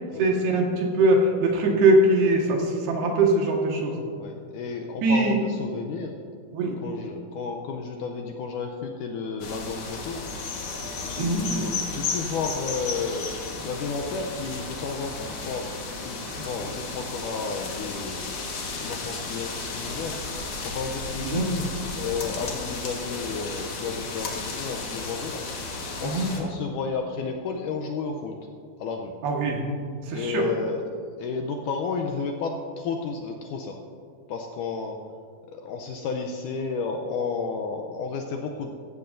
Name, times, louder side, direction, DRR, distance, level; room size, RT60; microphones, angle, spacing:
voice 1, 0.2-4.0 5.0-5.4 6.5-6.8 11.2-11.6 21.2-21.4 26.0-26.3 29.2-29.6 30.1-30.5, right 2 dB, 90° right, 0 dB, 3.6 m, -22 dB
voice 2, 4.2-6.2 6.8-10.2 11.0-15.7 16.0-18.4 18.8-20.2 20.6-21.7 21.9-25.4 26.0-28.3 28.8-29.1 30.1-30.8 31.2-33.8 34.3-35.0 35.5-38.7, left 5 dB, 85° left, 3 dB, 1.8 m, -32 dB
sound 1, 9.4-26.4, left 3 dB, 50° left, 1.9 m, -34 dB
15.5 x 15.0 x 2.6 m, 2.3 s
omnidirectional pair, 4.4 m